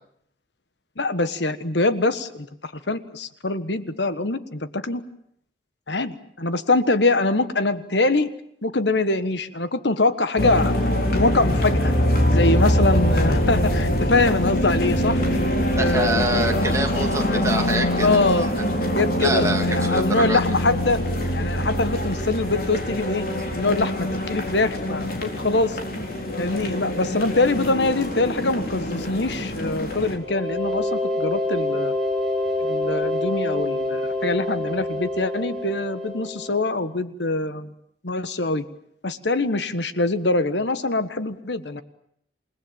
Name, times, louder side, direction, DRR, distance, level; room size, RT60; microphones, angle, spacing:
voice 1, 1.0-5.0 5.9-8.3 8.6-10.7 11.1-11.9 12.3-15.2 15.7-16.8 17.3-17.4 18.0-18.5 18.9-21.0 21.3-23.2 23.5-25.8 26.4-31.9 32.6-37.7 38.0-38.7 39.0-41.8, left 2 dB, 75° left, 12 dB, 1.4 m, -24 dB
sound 1, 10.4-30.2, left 1 dB, 55° left, 4.4 m, -24 dB
voice 2, 15.8-18.2 19.2-20.4, right 2 dB, 15° right, 3 dB, 2.5 m, -26 dB
sound 2, 30.2-36.8, left 1 dB, 5° left, 5.6 m, -26 dB
28.5 x 19.5 x 9.1 m, 0.70 s
head